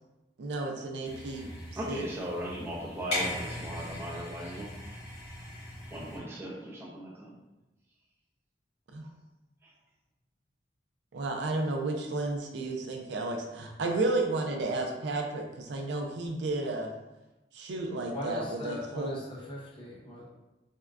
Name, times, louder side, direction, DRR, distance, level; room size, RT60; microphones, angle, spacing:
voice 1, 0.4-1.5 1.9-2.0 8.9-9.1 11.1-16.9 17.5-19.2, right 2 dB, 75° right, 2 dB, 0.4 m, -32 dB
sound 1, 1.0-6.2, left 1 dB, 80° left, 1.4 m, -39 dB
voice 2, 1.8-4.7 5.9-7.4 9.6-9.7, equal, 15° right, -5 dB, 0.6 m, -38 dB
voice 3, 18.1-20.3, left 1 dB, 30° left, -3 dB, 0.6 m, -39 dB
3.5 x 2.1 x 2.3 m, 1.0 s
head